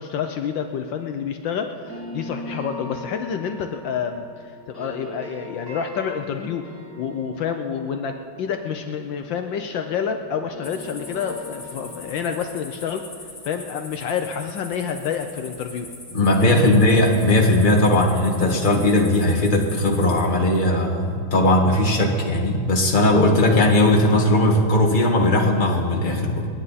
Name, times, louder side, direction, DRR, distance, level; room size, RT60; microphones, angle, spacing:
voice 1, 0.0-4.3 4.7-6.7 7.0-13.1 13.4-15.9 16.4-16.7, left 7 dB, 75° left, 5 dB, 1.4 m, -28 dB
sound 1, 1.9-10.0 10.3-15.2, equal, 10° right, 4.5 m, -41 dB
sound 2, 10.6-20.3, left 2 dB, 45° left, 3.4 m, -41 dB
voice 2, 16.1-26.5, left 1 dB, 25° left, 0 dB, 1.8 m, -18 dB
29.5 x 10.0 x 4.1 m, 2.3 s
omnidirectional pair, 2.2 m